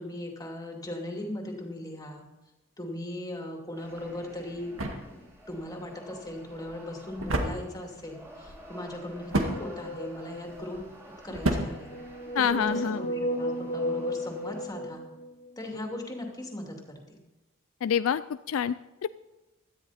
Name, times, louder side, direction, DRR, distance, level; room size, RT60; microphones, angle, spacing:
voice 1, 0.0-2.2 2.8-5.2 5.5-11.0 11.2-11.9 12.4-15.0 15.6-17.2, left 1 dB, 20° left, 1 dB, 2.6 m, -38 dB
sound 1, 3.7-14.7, right 1 dB, 10° right, 3.7 m, -51 dB
sound 2, 3.9-12.8, right 1 dB, 80° right, 1.9 m, -34 dB
sound 3, 9.2-10.8 11.6-15.5, equal, 35° left, 1.0 m, -34 dB
voice 2, 12.4-13.0 17.8-18.2 18.5-18.7 19.0-19.1, left 8 dB, 70° left, 14 dB, 0.4 m, -26 dB
17.0 x 13.0 x 4.3 m, 1.1 s
head